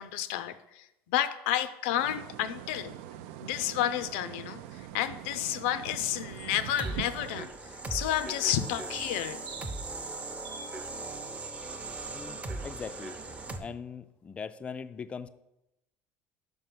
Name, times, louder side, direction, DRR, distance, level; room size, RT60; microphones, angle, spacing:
voice 1, 0.0-3.0 3.4-7.5 7.9-9.4, left 12 dB, 90° left, 13 dB, 0.5 m, -31 dB
sound 1, 2.0-7.5, right 11 dB, 90° right, 0.4 m, -43 dB
sound 2, 6.2-13.6, right 2 dB, 20° right, 0.7 m, -39 dB
sound 3, 6.4-7.0 8.7-9.9 10.2-10.8, right 5 dB, 70° right, 0.8 m, -47 dB
voice 2, 12.1-13.3 13.6-15.3, left 6 dB, 20° left, 12 dB, 0.3 m, -41 dB
5.4 x 5.3 x 6.0 m, 0.89 s
cardioid pair, 130°, 6 cm